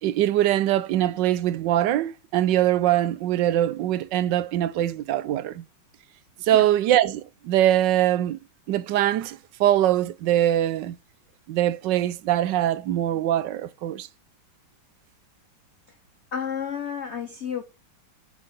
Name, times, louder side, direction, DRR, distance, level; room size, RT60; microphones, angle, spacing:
voice 1, 0.0-5.6 6.4-8.4 8.7-11.0 11.5-14.1, right 12 dB, 75° right, 1.2 m, -22 dB
voice 2, 16.3-17.6, left 7 dB, 55° left, 0.7 m, -31 dB
9.5 x 5.8 x 5.1 m
omnidirectional pair, 2.1 m